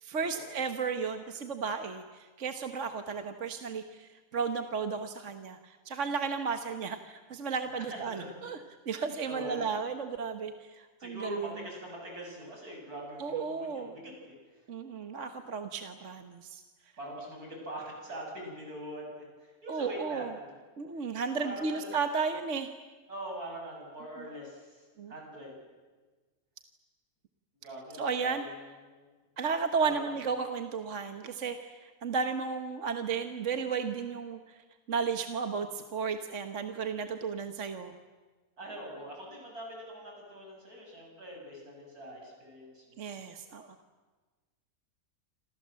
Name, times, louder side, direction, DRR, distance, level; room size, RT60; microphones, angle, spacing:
voice 1, 0.0-8.6 8.8-11.5 13.2-13.9 14.7-16.6 19.7-20.3 20.8-22.7 24.2-24.3 25.0-25.1 27.9-28.4 29.4-37.9 43.0-43.7, right 5 dB, 55° right, 7 dB, 1.5 m, -34 dB
voice 2, 7.9-8.3 8.9-9.7 11.0-14.1 17.0-20.5 21.4-21.9 23.1-24.8 25.1-25.6 27.6-28.6 28.9-29.1 29.8-30.0 38.6-43.1, equal, 80° right, 0 dB, 8.6 m, -43 dB
28.0 x 27.0 x 7.6 m, 1.3 s
omnidirectional pair, 1.6 m